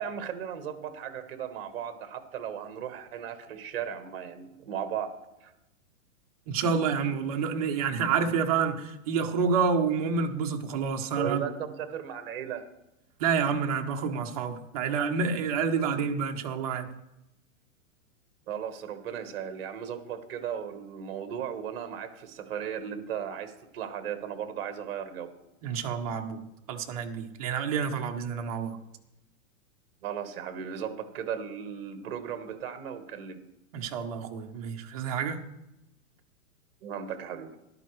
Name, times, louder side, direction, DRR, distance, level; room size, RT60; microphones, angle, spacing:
voice 1, 0.0-5.1 5.4-5.5 11.1-12.6 18.5-25.3 30.0-33.4 36.8-37.5, right 8 dB, 45° right, 9 dB, 1.3 m, -36 dB
voice 2, 6.5-11.5 13.2-16.9 25.6-26.4 26.7-28.8 33.7-35.4, right 6 dB, 25° right, 3 dB, 0.7 m, -28 dB
13.5 x 11.5 x 3.2 m, 0.91 s
supercardioid pair, 175°, 41 cm